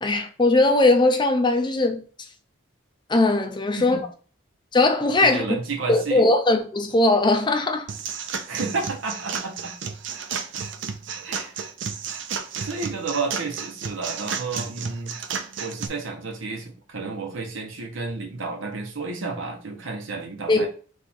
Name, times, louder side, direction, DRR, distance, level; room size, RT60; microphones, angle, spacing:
voice 1, 0.0-2.0 3.1-4.1 4.7-5.4 5.9-7.9 20.5-20.7, left 2 dB, 25° left, 0.6 m, -19 dB
voice 2, 5.2-6.2 8.5-9.7 11.2-11.5 12.6-15.2 15.6-20.7, right 3 dB, 80° right, 1.0 m, -31 dB
sound 1, 7.9-15.9, right 6 dB, 65° right, 0.5 m, -32 dB
3.5 x 3.2 x 4.3 m
head